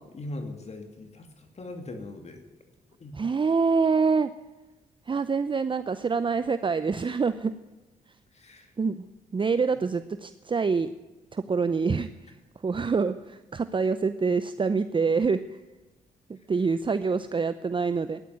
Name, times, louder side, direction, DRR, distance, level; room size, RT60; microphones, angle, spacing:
voice 1, 0.1-2.4 3.0-3.2 8.3-8.7, left 2 dB, 40° left, 6 dB, 2.5 m, -40 dB
voice 2, 3.2-4.3 5.1-7.5 8.8-9.0 9.3-10.9 11.3-12.1 12.6-15.4 16.3-18.2, right 5 dB, 30° right, 12 dB, 0.7 m, -26 dB
14.0 x 11.0 x 9.4 m, 1.1 s
cardioid pair, 65°, 16 cm